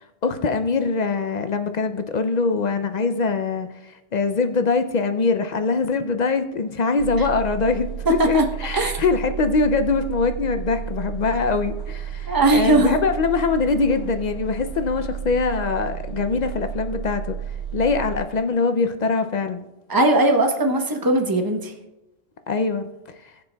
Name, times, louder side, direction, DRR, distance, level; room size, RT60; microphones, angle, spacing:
voice 1, 0.2-17.4 17.7-19.7 22.5-22.9 23.2-23.3, left 4 dB, 55° left, 8 dB, 0.5 m, -23 dB
sound 1, 7.0-18.2, right 8 dB, 65° right, 2.7 m, -32 dB
voice 2, 12.3-13.0 19.9-21.7, right 2 dB, 20° right, 4 dB, 0.8 m, -19 dB
19.5 x 6.8 x 2.2 m, 0.97 s
omnidirectional pair, 1.2 m